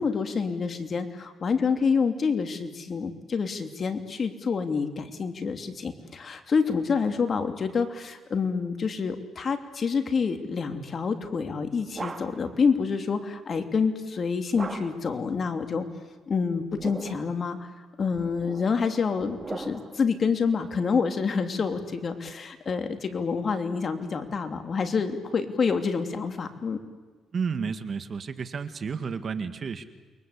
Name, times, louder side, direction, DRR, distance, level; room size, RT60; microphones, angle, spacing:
voice 1, 0.0-15.8 16.3-17.7 18.0-26.8, left 5 dB, 45° left, 7 dB, 3.0 m, -27 dB
sound 1, 11.4-12.6 14.6-15.2 16.5-17.4 18.1-20.1, right 3 dB, 30° right, 2.6 m, -39 dB
voice 2, 27.3-29.9, right 5 dB, 45° right, 10 dB, 1.9 m, -31 dB
29.0 x 23.0 x 8.4 m, 1.4 s
cardioid pair, 90°, 0 cm